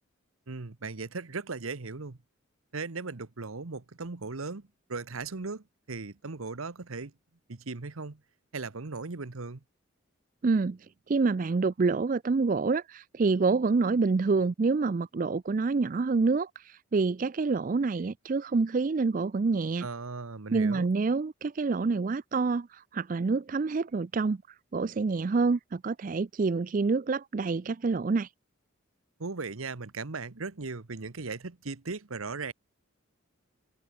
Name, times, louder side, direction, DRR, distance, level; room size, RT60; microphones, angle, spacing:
voice 1, 0.5-2.2 2.7-7.1 7.5-8.2 8.5-9.6 19.8-20.9 29.2-32.5, right 4 dB, 85° right, 1.1 m, -37 dB
voice 2, 10.4-10.8 11.1-19.9 20.5-24.4 24.7-28.3, right 4 dB, 40° right, 0.4 m, -27 dB
head